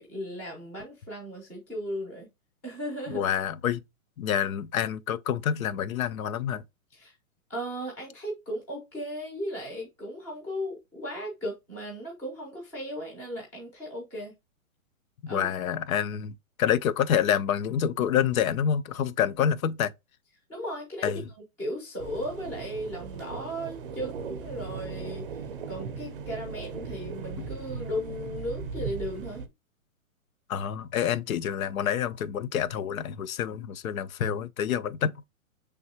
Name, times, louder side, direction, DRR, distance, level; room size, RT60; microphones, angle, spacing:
voice 1, 0.0-2.3 2.6-3.3 6.9-7.1 7.5-14.3 15.3-15.5 20.5-21.1 21.6-29.4, equal, 5° left, 0.5 m, -36 dB
voice 2, 3.1-3.8 4.2-6.6 15.2-19.9 21.0-21.2 30.5-35.1, left 9 dB, 75° left, 0.6 m, -27 dB
sound 1, 22.0-29.5, right 5 dB, 40° right, 0.6 m, -38 dB
5.5 x 3.4 x 2.7 m
hypercardioid pair, 165°, 41 cm